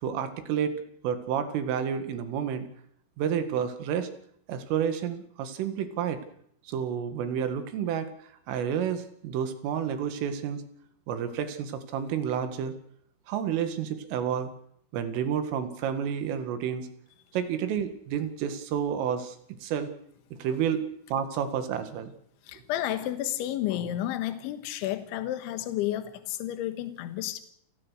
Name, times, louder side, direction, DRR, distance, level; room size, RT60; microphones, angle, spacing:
voice 1, 0.0-2.7 3.2-4.1 4.5-6.2 6.7-10.6 11.1-12.7 13.3-14.5 14.9-16.9 17.3-19.4 19.6-19.9 20.4-22.1, right 8 dB, 90° right, 9 dB, 4.6 m, -30 dB
voice 2, 22.4-27.4, left 13 dB, 80° left, 9 dB, 3.7 m, -31 dB
29.5 x 18.0 x 6.5 m, 0.67 s
omnidirectional pair, 5.6 m